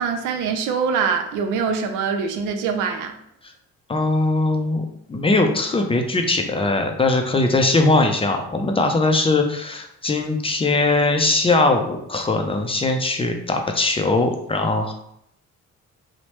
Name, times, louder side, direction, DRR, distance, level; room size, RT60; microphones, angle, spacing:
voice 1, 0.0-3.1, right 6 dB, 90° right, 5 dB, 0.5 m, -23 dB
voice 2, 3.9-14.9, left 2 dB, 20° left, 4 dB, 0.4 m, -20 dB
3.0 x 2.0 x 3.0 m, 0.73 s
cardioid pair, 90°, 30 cm